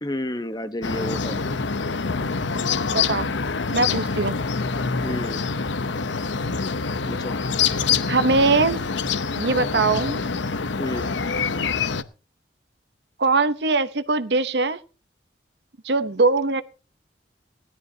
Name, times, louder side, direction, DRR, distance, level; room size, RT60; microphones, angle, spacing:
voice 1, 0.0-1.4 5.0-5.4 7.1-7.4 10.8-11.1, left 1 dB, 20° left, 1.0 m, -30 dB
sound 1, 0.8-12.0, left 5 dB, 80° left, 0.8 m, -25 dB
voice 2, 2.9-3.3 3.7-4.4 8.1-8.8 9.4-10.2 13.2-14.8 15.8-16.6, right 3 dB, 65° right, 0.9 m, -21 dB
19.0 x 12.5 x 2.8 m
head